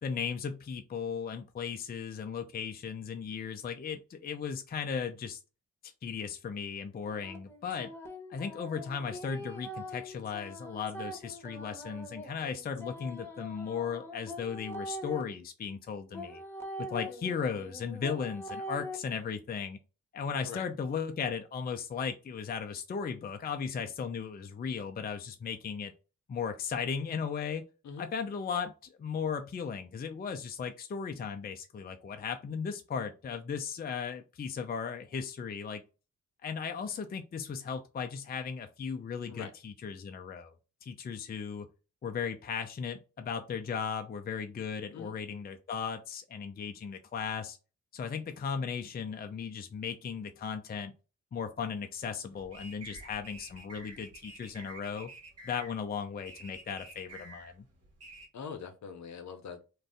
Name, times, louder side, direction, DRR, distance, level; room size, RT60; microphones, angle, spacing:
voice 1, 0.0-5.4 5.8-7.9 8.3-16.4 16.8-19.8 20.1-25.9 26.3-27.6 28.0-28.7 29.0-35.8 36.4-40.5 40.8-41.7 42.0-47.6 47.9-50.9 51.3-55.1 55.4-57.7, left 6 dB, 30° left, 0.4 m, -36 dB
sound 1, 7.0-15.2 16.1-19.0, equal, 5° left, 1.1 m, -43 dB
sound 2, 52.3-58.3, right 2 dB, 50° right, 1.2 m, -50 dB
voice 2, 58.3-59.7, left 6 dB, 60° left, 0.7 m, -43 dB
2.5 x 2.3 x 3.5 m
supercardioid pair, 50°, 32 cm